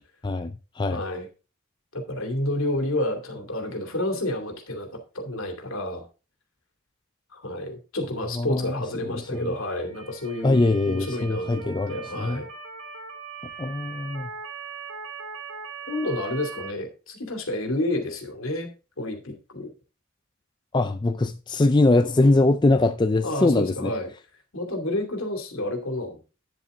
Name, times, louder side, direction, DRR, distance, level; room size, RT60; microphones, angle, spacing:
voice 1, 0.2-1.0 8.4-8.7 9.1-9.6 10.4-12.4 13.6-14.3 20.7-23.9, left 2 dB, 20° left, 0.4 m, -22 dB
voice 2, 0.9-1.3 1.9-6.0 7.3-12.5 15.9-18.7 19.0-19.7 23.2-24.1 24.5-26.2, left 1 dB, 70° left, 2.6 m, -30 dB
Motor vehicle (road) / Siren, 9.2-16.7, right 5 dB, 80° right, 2.2 m, -40 dB
10.0 x 7.3 x 3.8 m
head